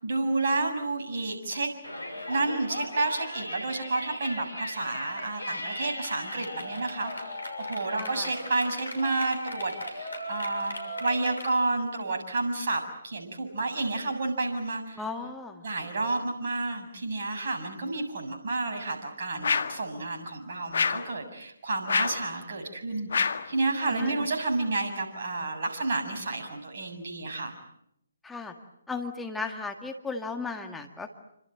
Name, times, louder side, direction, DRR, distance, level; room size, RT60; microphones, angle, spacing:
voice 1, 0.0-1.7 2.3-10.8 11.0-15.0 15.6-27.5, right 2 dB, 45° right, 4 dB, 7.2 m, -30 dB
Yell, 1.8-11.5, left 1 dB, 75° left, 6.6 m, -37 dB
voice 2, 8.0-8.3 15.0-15.6 23.8-24.3 28.2-28.5 28.9-31.1, left 4 dB, 5° left, 4 dB, 1.9 m, -36 dB
sound 1, 19.4-19.8 20.7-21.1 21.9-22.3 23.1-23.5, left 5 dB, 55° left, 1.7 m, -27 dB
29.0 x 26.0 x 7.8 m, 0.78 s
figure-of-eight pair, 140°, 0 cm